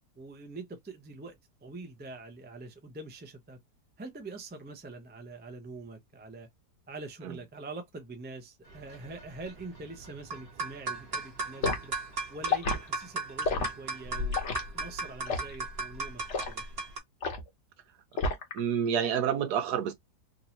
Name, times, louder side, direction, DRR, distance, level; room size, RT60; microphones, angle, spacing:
voice 1, 0.2-3.6 4.0-6.5 6.9-11.9 12.3-14.4 14.7-16.6, right 3 dB, 15° right, 0.4 m, -44 dB
sound 1, 8.7-17.0, right 2 dB, 40° right, 1.5 m, -36 dB
Liquid, 11.6-11.8 12.4-12.8 13.4-13.7 14.3-14.6 15.3-15.5 16.3-16.5 17.2-17.5 18.2-18.6 18.9-19.2, left 4 dB, 50° left, 1.2 m, -30 dB
voice 2, 18.5-19.9, right 8 dB, 75° right, 1.4 m, -28 dB
3.6 x 2.7 x 3.0 m
omnidirectional pair, 1.7 m